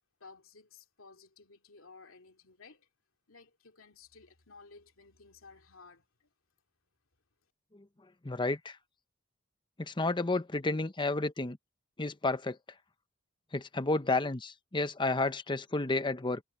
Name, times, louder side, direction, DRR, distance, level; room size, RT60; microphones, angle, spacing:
voice 1, 0.2-2.9 3.3-6.3, left 4 dB, 80° left, 2.6 m, -56 dB
voice 2, 8.2-8.8 9.8-11.6 12.0-12.6 13.5-16.4, left 2 dB, 25° left, 0.9 m, -31 dB
head